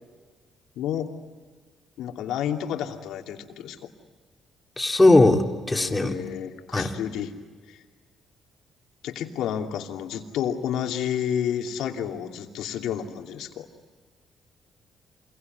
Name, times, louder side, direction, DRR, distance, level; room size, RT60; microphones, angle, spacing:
voice 1, 0.8-1.1 2.0-3.9 5.7-7.3 7.7-7.8 9.0-13.7, left 9 dB, 90° left, 4 dB, 2.8 m, -30 dB
voice 2, 4.8-6.2 6.7-6.9, left 2 dB, 15° left, 4 dB, 3.1 m, -19 dB
27.5 x 22.5 x 9.4 m, 1.5 s
cardioid pair, 90°, 0 cm